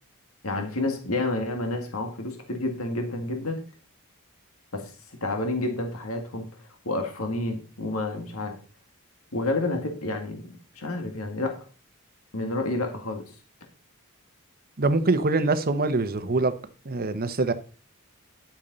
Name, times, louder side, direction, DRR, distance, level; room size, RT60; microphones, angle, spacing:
voice 1, 0.4-3.6 4.7-6.5 6.8-8.6 9.3-11.5 12.3-13.4, left 2 dB, 75° left, 1.9 m, -29 dB
voice 2, 14.8-16.5 16.8-17.5, right 3 dB, 45° right, 0.9 m, -24 dB
10.5 x 8.7 x 4.0 m
head